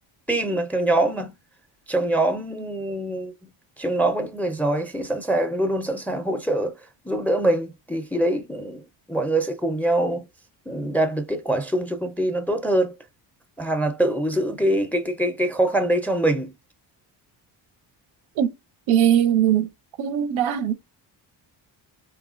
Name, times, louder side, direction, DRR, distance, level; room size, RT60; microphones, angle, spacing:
voice 1, 0.3-1.3 1.9-3.3 3.8-6.7 7.1-8.8 9.1-10.2 10.7-12.9 13.6-16.5, right 1 dB, 5° left, 0.4 m, -24 dB
voice 2, 18.9-19.7 20.0-20.7, right 10 dB, 85° right, 0.6 m, -20 dB
3.2 x 2.4 x 2.4 m
cardioid pair, 85°, 47 cm